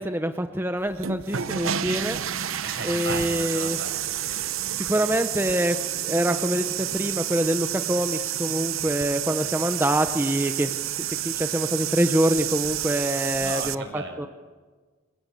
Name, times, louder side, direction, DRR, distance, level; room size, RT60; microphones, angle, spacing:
voice 1, 0.0-2.2 2.8-3.8 4.8-11.0 11.2-14.3, right 1 dB, 10° right, 7 dB, 1.0 m, -25 dB
sound 1, 0.9-13.7, right 11 dB, 80° right, 0.9 m, -30 dB
voice 2, 2.6-4.6 13.4-14.3, right 3 dB, 55° right, 5 dB, 6.4 m, -37 dB
30.0 x 23.5 x 8.4 m, 1.4 s
head